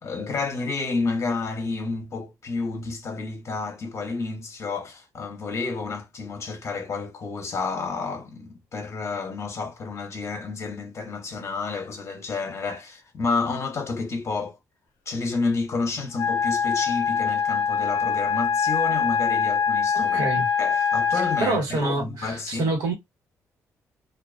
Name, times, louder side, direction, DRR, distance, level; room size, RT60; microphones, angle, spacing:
voice 1, 0.0-14.6 15.1-20.3 20.6-22.7, left 4 dB, 50° left, 0.7 m, -30 dB
Wind instrument woodwind instrument, 16.1-21.5, left 6 dB, 90° left, 0.5 m, -23 dB
voice 2, 19.9-20.5 21.1-22.9, right 2 dB, 90° right, 1.2 m, -27 dB
2.4 x 2.2 x 2.3 m
cardioid pair, 75°, 6 cm